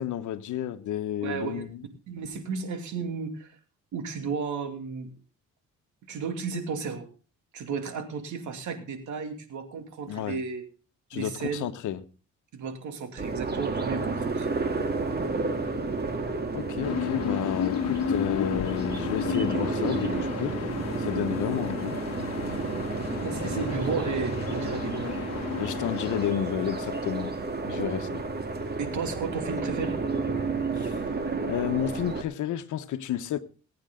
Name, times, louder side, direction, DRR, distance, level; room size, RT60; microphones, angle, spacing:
voice 1, 0.0-1.9 10.1-10.4 11.1-12.0 16.5-20.6 21.0-22.0 22.5-22.6 23.4-23.7 25.6-27.3 27.6-28.2 30.8-31.0 31.5-33.4, left 11 dB, 75° left, 1.1 m, -31 dB
voice 2, 1.2-1.6 2.1-3.5 3.9-5.1 6.0-7.1 7.5-10.6 11.1-11.7 12.5-14.5 23.1-25.2 27.8-27.9 28.8-30.0, right 5 dB, 75° right, 2.7 m, -33 dB
sound 1, 13.2-32.2, right 3 dB, 35° right, 2.1 m, -31 dB
sound 2, 16.8-26.3, left 7 dB, 55° left, 1.4 m, -33 dB
19.5 x 9.0 x 3.8 m
cardioid pair, 90°, 30 cm